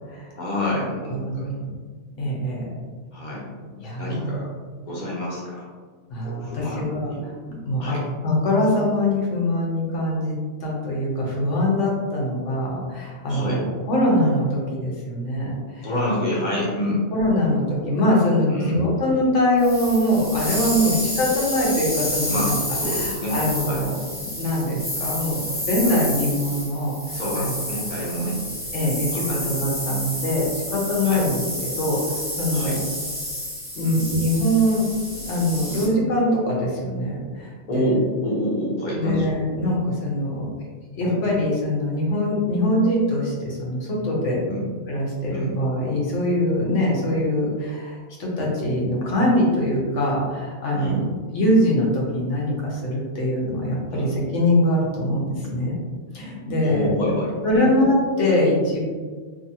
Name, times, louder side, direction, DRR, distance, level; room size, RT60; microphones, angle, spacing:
voice 1, 0.4-1.5 3.1-3.7 4.0-4.5 4.9-5.7 6.2-7.2 7.8-8.0 13.2-13.6 15.8-17.0 18.5-18.8 20.8-21.0 22.3-23.4 23.7-23.8 25.8-26.0 27.1-28.4 29.1-29.5 29.9-30.0 31.0-31.2 32.5-32.8 33.8-34.0 35.7-35.9 37.7-39.3 39.6-39.7 41.0-41.2 44.5-44.6 45.3-45.5 50.7-51.0 53.9-54.1 56.6-57.7, left 1 dB, 45° left, -5 dB, 0.8 m, -28 dB
voice 2, 1.1-1.7 2.2-2.7 3.8-4.4 6.1-8.0 8.2-15.9 17.1-22.5 22.9-27.5 28.7-32.8 33.7-38.0 38.9-40.5 41.0-44.4 44.9-51.0 51.3-54.1 54.3-55.7 56.1-56.9 57.4-58.8, left 1 dB, 85° left, -3 dB, 1.1 m, -23 dB
sound 1, 19.6-35.9, left 1 dB, 15° left, 0.5 m, -30 dB
2.7 x 2.6 x 2.7 m, 1.5 s
omnidirectional pair, 1.2 m